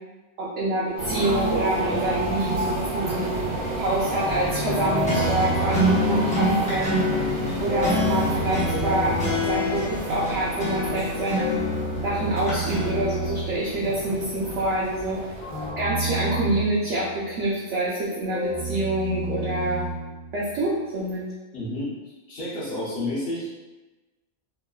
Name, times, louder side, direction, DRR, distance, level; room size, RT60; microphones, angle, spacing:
voice 1, 0.4-3.3 3.8-7.0 7.6-9.2 9.4-11.5 12.0-15.3 15.8-19.8 20.3-21.2, right 1 dB, 65° right, -8 dB, 0.8 m, -26 dB
sound 1, 1.0-15.7, right 1 dB, 90° right, 1.2 m, -31 dB
sound 2, 3.4-10.4 11.3-14.3 15.4-17.5 18.3-20.7, right 2 dB, 80° left, 1.0 m, -32 dB
sound 3, 4.8-13.4, left 2 dB, 10° left, 0.3 m, -28 dB
voice 2, 21.5-21.9 22.3-23.5, left 1 dB, 55° left, -7 dB, 0.8 m, -30 dB
2.9 x 2.0 x 2.2 m, 1.2 s
omnidirectional pair, 1.4 m